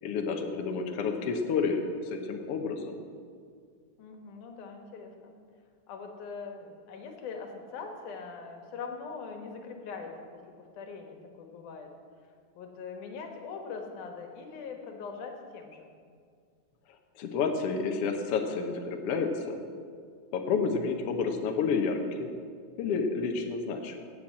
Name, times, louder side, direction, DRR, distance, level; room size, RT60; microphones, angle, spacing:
voice 1, 0.0-3.0 17.2-19.6 20.3-22.3 22.8-24.0, left 5 dB, 90° left, 4 dB, 1.3 m, -30 dB
voice 2, 4.0-5.4 5.9-10.4 10.7-11.9 12.5-15.9, left 5 dB, 65° left, 3 dB, 2.6 m, -42 dB
16.5 x 6.0 x 7.4 m, 2.1 s
omnidirectional pair, 4.2 m